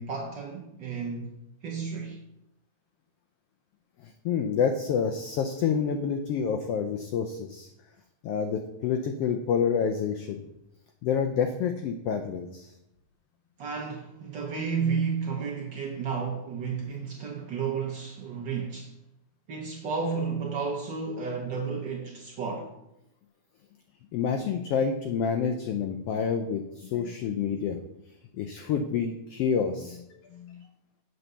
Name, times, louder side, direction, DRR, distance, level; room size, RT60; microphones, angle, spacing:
voice 1, 0.0-1.4 1.6-2.2 13.6-18.9 19.5-22.7, right 5 dB, 75° right, 1.0 m, -32 dB
voice 2, 4.0-7.7 8.2-10.4 11.0-12.7 24.1-27.8 28.3-30.7, left 6 dB, 90° left, 1.3 m, -28 dB
7.7 x 4.1 x 6.8 m
omnidirectional pair, 3.4 m